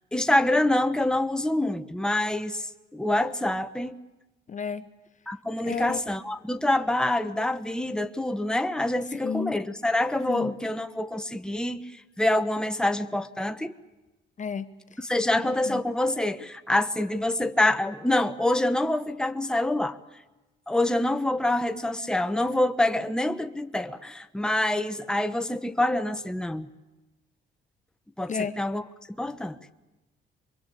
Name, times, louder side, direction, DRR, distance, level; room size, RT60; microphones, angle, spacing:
voice 1, 0.1-4.0 5.3-13.7 15.0-20.0 20.7-26.7 28.2-28.8 29.2-29.6, left 1 dB, 5° left, 8 dB, 1.2 m, -26 dB
voice 2, 4.5-4.9 5.6-6.0 9.2-9.6 10.2-10.5 14.4-14.7 15.7-15.8 28.3-28.6, left 6 dB, 40° left, 11 dB, 0.9 m, -31 dB
25.0 x 22.5 x 8.5 m, 1.1 s
cardioid pair, 90°, 20 cm